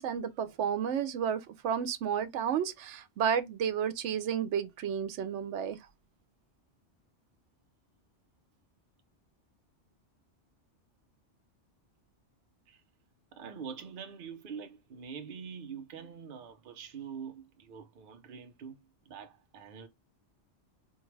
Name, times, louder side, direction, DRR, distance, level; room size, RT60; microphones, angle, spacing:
voice 1, 0.0-5.8, right 8 dB, 80° right, 0.9 m, -32 dB
voice 2, 13.3-19.9, right 6 dB, 55° right, 0.8 m, -45 dB
4.5 x 2.4 x 3.1 m
omnidirectional pair, 1.2 m